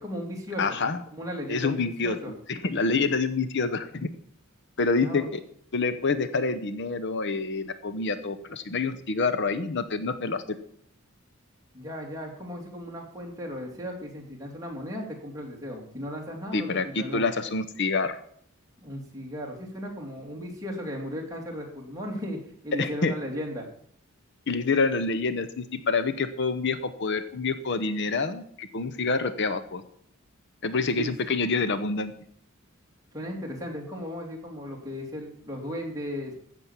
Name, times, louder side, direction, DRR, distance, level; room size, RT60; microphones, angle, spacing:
voice 1, 0.0-2.3 5.0-5.3 11.7-17.3 18.8-23.7 31.0-31.1 33.1-36.4, equal, 15° right, -1 dB, 2.9 m, -36 dB
voice 2, 0.6-1.0 1.5-4.1 4.8-5.4 5.7-10.4 16.5-18.2 22.7-23.2 24.5-29.8 30.6-32.1, left 4 dB, 55° left, 10 dB, 0.8 m, -27 dB
15.0 x 6.3 x 7.3 m, 0.63 s
head